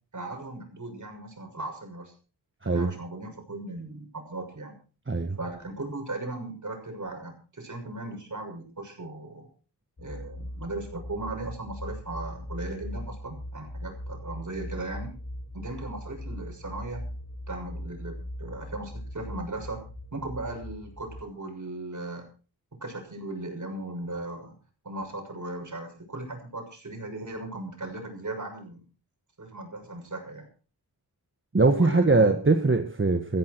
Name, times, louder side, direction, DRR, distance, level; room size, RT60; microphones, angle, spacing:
voice 1, 0.1-2.1 2.6-4.8 5.4-9.5 10.0-15.1 15.5-17.1 17.5-22.3 22.8-24.6 24.8-28.8 29.4-30.5 31.7-32.3, right 2 dB, 50° right, 3 dB, 6.5 m, -37 dB
voice 2, 5.1-5.4 31.5-33.4, right 3 dB, 30° right, 7 dB, 1.4 m, -22 dB
sound 1, 10.0-21.2, left 1 dB, 45° left, 4.7 m, -39 dB
15.0 x 14.5 x 4.6 m, 0.37 s
wide cardioid pair, 75°, 39 cm